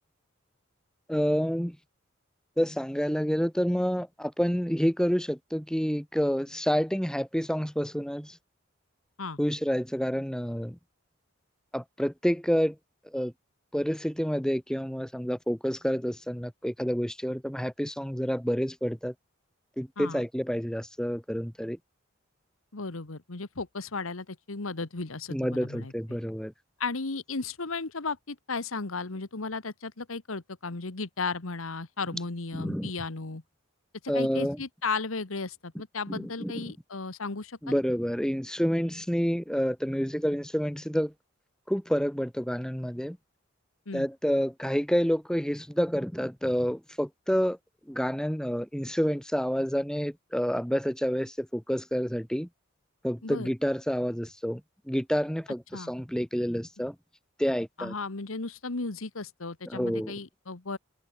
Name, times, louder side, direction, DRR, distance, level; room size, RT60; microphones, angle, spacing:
voice 1, 1.1-1.8 2.6-8.4 9.4-10.8 11.7-12.8 13.0-13.3 13.7-19.1 19.8-21.8 25.3-26.5 32.5-32.9 34.1-34.6 36.1-36.6 37.6-41.1 41.7-43.2 43.9-47.6 47.9-52.5 53.0-54.6 54.9-57.0 57.4-57.9 59.7-60.1, equal, 5° left, 2.1 m, -28 dB
voice 2, 22.7-25.9 26.8-33.4 34.1-37.8 43.9-44.1 53.2-53.5 55.7-55.9 57.8-60.8, left 4 dB, 90° left, 1.4 m, -35 dB
head